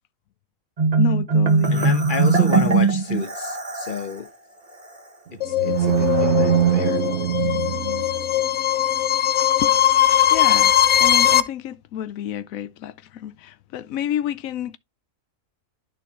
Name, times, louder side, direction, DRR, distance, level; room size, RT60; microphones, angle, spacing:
Marimba xylophone, 0.8-4.1, right 4 dB, 30° right, 1.2 m, -19 dB
voice 1, 1.0-2.0 9.6-9.8 10.3-14.8, left 10 dB, 80° left, 1.1 m, -29 dB
voice 2, 1.7-4.3 5.5-7.0, left 4 dB, 40° left, 1.2 m, -31 dB
sound 1, 5.3-8.5, right 10 dB, 60° right, 1.0 m, -22 dB
sound 2, 5.4-11.4, left 11 dB, 60° left, 1.0 m, -20 dB
12.5 x 4.1 x 3.0 m
omnidirectional pair, 1.4 m